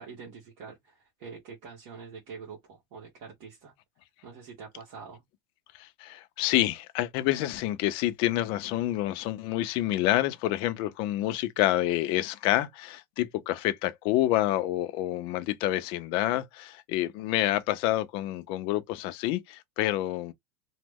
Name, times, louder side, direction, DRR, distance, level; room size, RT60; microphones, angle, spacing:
voice 1, 0.0-3.7 4.2-5.2, right 5 dB, 50° right, 1.2 m, -45 dB
voice 2, 5.8-20.3, left 15 dB, 45° left, 0.5 m, -28 dB
3.0 x 2.1 x 3.4 m
supercardioid pair, 150°, 12 cm